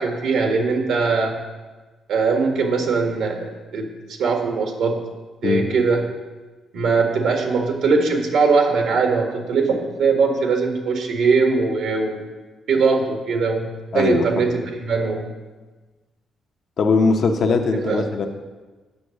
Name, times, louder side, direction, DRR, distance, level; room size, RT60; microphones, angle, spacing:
voice 1, 0.0-1.4 2.1-3.9 4.2-4.9 5.4-6.0 6.7-12.2 12.7-15.3 17.7-18.0, right 4 dB, 75° right, 3 dB, 1.7 m, -21 dB
voice 2, 13.9-14.5 16.8-18.3, left 4 dB, 55° left, 3 dB, 0.9 m, -20 dB
8.4 x 6.2 x 6.4 m, 1.3 s
cardioid pair, 90°, 0 cm